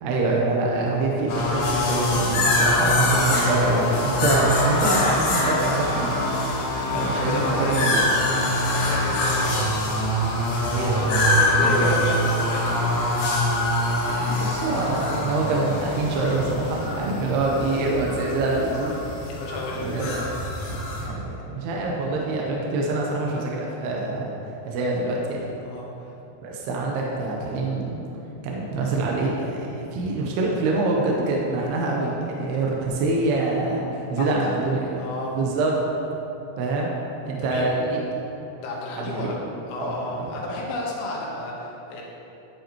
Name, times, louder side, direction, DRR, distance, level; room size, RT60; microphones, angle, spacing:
voice 1, 0.0-6.2 6.9-8.0 10.7-11.0 11.6-12.0 14.2-18.9 19.8-20.3 21.0-24.3 24.7-25.4 26.4-28.0 28.4-35.0 35.4-35.7 36.6-36.9 37.3-38.0 39.0-39.3 39.8-40.2, right 2 dB, 75° right, -2 dB, 2.6 m, -25 dB
sound 1, 1.3-21.1, left 1 dB, 65° left, 2.3 m, -24 dB
voice 2, 6.9-9.9 10.9-12.8 19.2-20.0 20.6-20.7 25.6-26.1 34.1-34.5 35.0-35.4 37.4-37.8 38.6-39.4 39.7-42.0, left 2 dB, 80° left, -3 dB, 3.7 m, -32 dB
11.5 x 7.8 x 3.0 m, 3.0 s
omnidirectional pair, 5.3 m